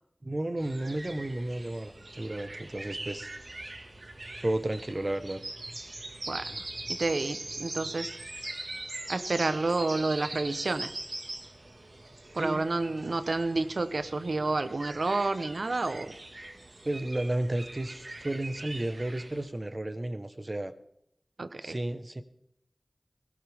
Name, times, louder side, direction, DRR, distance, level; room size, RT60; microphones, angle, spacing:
voice 1, 0.2-3.3 4.4-5.4 12.4-12.6 16.8-20.7 21.6-22.2, right 1 dB, 40° right, 9 dB, 1.3 m, -32 dB
sound 1, 0.6-19.5, right 2 dB, 70° right, 2.0 m, -42 dB
voice 2, 6.9-8.1 9.1-10.9 12.3-16.1 21.4-21.7, right 3 dB, 85° right, 11 dB, 1.0 m, -29 dB
21.0 x 16.5 x 3.6 m, 0.75 s
wide cardioid pair, 55°, 0 cm